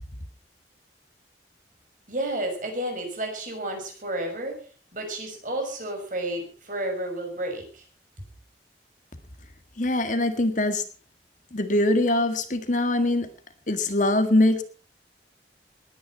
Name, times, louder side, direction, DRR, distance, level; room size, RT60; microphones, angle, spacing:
voice 1, 2.1-4.6 4.9-7.8, right 1 dB, 45° right, 3 dB, 6.1 m, -31 dB
voice 2, 9.8-10.8 11.5-13.3 13.7-14.6, left 1 dB, 45° left, 8 dB, 1.8 m, -22 dB
19.5 x 10.0 x 5.7 m, 0.40 s
head